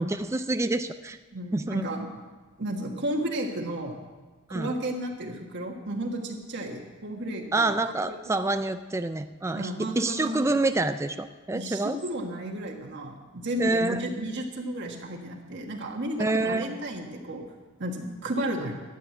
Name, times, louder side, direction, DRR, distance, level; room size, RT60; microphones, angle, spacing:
voice 1, 0.0-1.2 1.5-1.8 4.5-4.7 7.5-12.0 13.6-14.1 16.2-16.7, right 2 dB, 15° right, 10 dB, 0.3 m, -27 dB
voice 2, 1.3-2.1 2.6-3.9 4.5-7.7 8.0-8.1 9.5-10.5 11.5-17.4 17.8-18.7, right 1 dB, 50° right, 1 dB, 1.5 m, -33 dB
12.5 x 8.4 x 8.6 m, 1.3 s
head